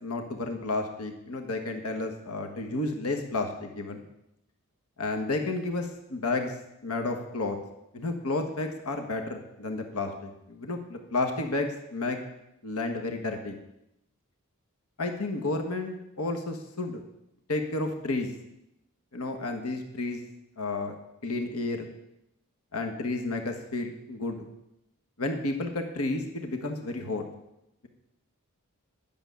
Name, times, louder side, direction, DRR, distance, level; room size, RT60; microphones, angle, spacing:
voice 1, 0.0-4.0 5.0-6.5 6.8-7.6 7.9-12.2 12.6-13.6 15.0-17.0 17.5-18.3 19.1-20.2 20.6-20.9 21.2-21.9 22.7-24.5 25.2-27.2, left 2 dB, 75° left, 4 dB, 1.5 m, -31 dB
11.0 x 7.0 x 9.3 m, 0.86 s
head